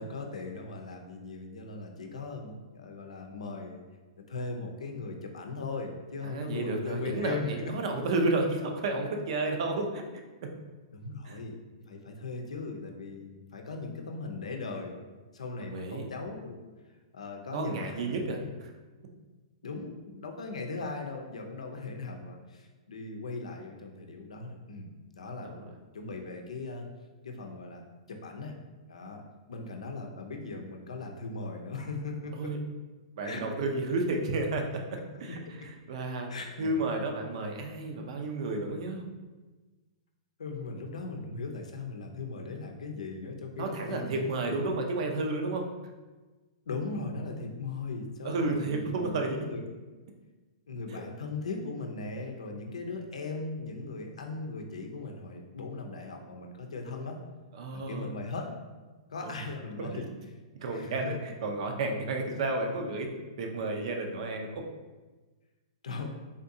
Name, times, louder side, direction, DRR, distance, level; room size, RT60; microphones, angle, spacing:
voice 1, 0.0-3.8 4.2-7.7 10.9-11.6 11.9-15.0 15.3-16.7 17.1-18.5 19.6-24.9 25.1-25.5 25.9-26.9 27.2-28.6 28.9-29.2 29.5-32.5 33.2-33.5 35.1-35.5 36.3-36.8 40.4-44.7 46.7-49.6 50.7-57.2 57.7-58.5 59.1-60.1 60.7-61.2 65.8-66.1, left 3 dB, 85° left, 3 dB, 0.5 m, -38 dB
voice 2, 6.2-10.0 10.4-10.5 11.3-11.4 15.7-16.1 17.5-18.7 25.4-25.7 32.4-32.6 33.2-35.4 35.9-36.3 36.6-39.1 43.6-45.7 48.2-49.4 57.5-58.1 59.2-59.3 59.8-60.0 60.6-63.1 63.4-64.6, right 2 dB, 60° right, 3 dB, 0.5 m, -31 dB
3.6 x 2.6 x 2.7 m, 1.2 s
hypercardioid pair, 130°, 3 cm